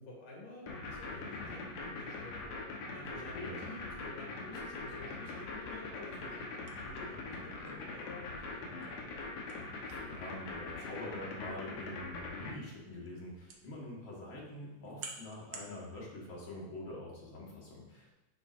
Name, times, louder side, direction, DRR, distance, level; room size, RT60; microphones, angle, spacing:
voice 1, 0.0-6.5 6.8-9.1, left 2 dB, 75° left, -3 dB, 3.9 m, -50 dB
sound 1, 0.7-12.5, left 3 dB, 60° left, 2.0 m, -42 dB
voice 2, 1.1-1.5 3.1-3.6 7.1-7.5 9.8-18.1, left 1 dB, 45° left, -4 dB, 2.1 m, -45 dB
sound 2, 5.9-15.7, right 4 dB, 70° right, 1.3 m, -55 dB
10.5 x 6.0 x 2.6 m, 1.0 s
omnidirectional pair, 3.7 m